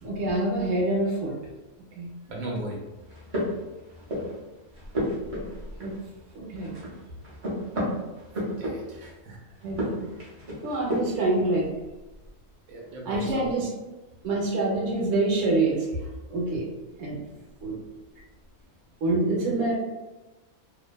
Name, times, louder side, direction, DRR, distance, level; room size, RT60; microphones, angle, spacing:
voice 1, 0.0-1.3 1.9-2.1 5.8-5.9 6.3-6.7 9.6-10.1 10.6-11.7 13.1-13.7 14.2-15.9 16.3-16.7 17.0-17.2 17.6-17.8 19.0-19.7, right 2 dB, 60° right, -3 dB, 0.9 m, -26 dB
voice 2, 2.3-2.8 8.6-9.4 12.7-13.5, right 1 dB, 85° right, -2 dB, 1.1 m, -36 dB
sound 1, 3.0-4.4 4.7-6.3 6.5-9.1 9.6-11.3, equal, 35° right, 0.5 m, -32 dB
2.6 x 2.1 x 2.2 m, 1.1 s
omnidirectional pair, 1.4 m